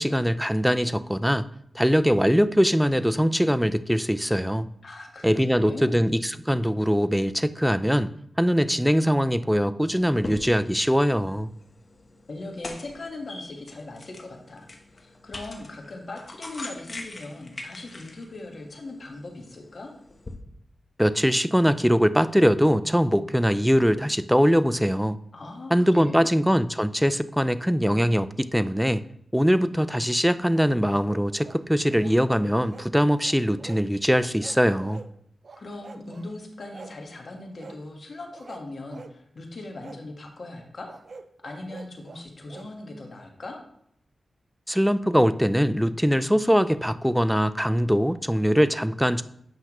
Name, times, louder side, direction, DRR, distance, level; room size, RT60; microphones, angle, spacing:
voice 1, 0.0-1.4 1.7-4.7 5.2-8.1 8.4-11.5 21.0-25.2 25.7-29.0 29.3-35.0 44.7-49.2, equal, ahead, 0.4 m, -22 dB
voice 2, 4.8-6.0 12.3-19.9 25.3-26.3 35.6-40.9 41.4-43.6, left 2 dB, 60° left, 1.4 m, -39 dB
sound 1, 10.0-20.4, left 2 dB, 40° left, 1.0 m, -43 dB
sound 2, 30.5-31.6 32.0-32.9 33.2-33.9 34.2-35.1 35.4-36.3 36.7-37.0 37.6-37.8 38.3-39.2 39.8-40.0 40.9-42.7, right 4 dB, 60° right, 0.5 m, -45 dB
8.0 x 5.6 x 3.0 m
cardioid pair, 65°, 0 cm